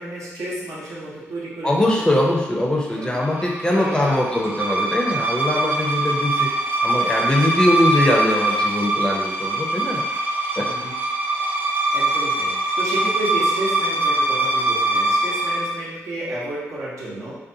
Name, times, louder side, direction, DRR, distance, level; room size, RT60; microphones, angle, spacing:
voice 1, 0.0-2.1 2.9-3.2 3.7-4.5 10.6-10.9 11.9-17.4, right 1 dB, 70° right, -7 dB, 0.9 m, -31 dB
voice 2, 1.6-6.5 6.8-10.0 10.6-10.7, left 1 dB, 15° left, -2 dB, 0.5 m, -21 dB
sound 1, 3.0-15.7, right 2 dB, 35° right, 0.5 m, -23 dB
2.5 x 2.3 x 2.6 m, 1.1 s
supercardioid pair, 50°, 6 cm